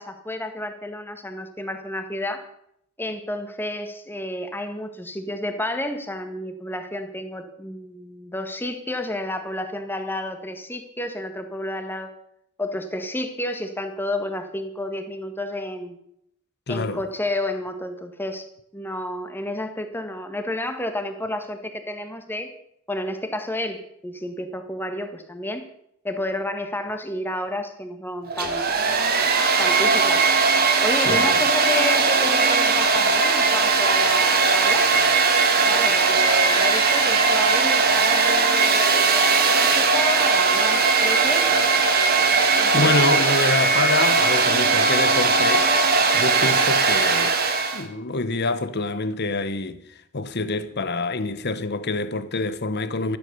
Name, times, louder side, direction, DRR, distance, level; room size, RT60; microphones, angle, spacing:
voice 1, 0.0-2.4 3.0-12.1 12.6-16.0 16.7-18.5 18.7-22.5 22.9-25.6 26.0-28.7 29.6-30.3 30.8-34.9 35.6-41.6 42.6-42.9, left 1 dB, 10° left, 1.6 m, -31 dB
voice 2, 16.7-17.0 31.0-31.4 42.3-45.7 46.1-47.4 47.7-53.2, left 3 dB, 50° left, 1.1 m, -26 dB
Domestic sounds home sounds, 28.3-47.8, right 4 dB, 45° right, 1.9 m, -19 dB
13.5 x 12.0 x 6.9 m
head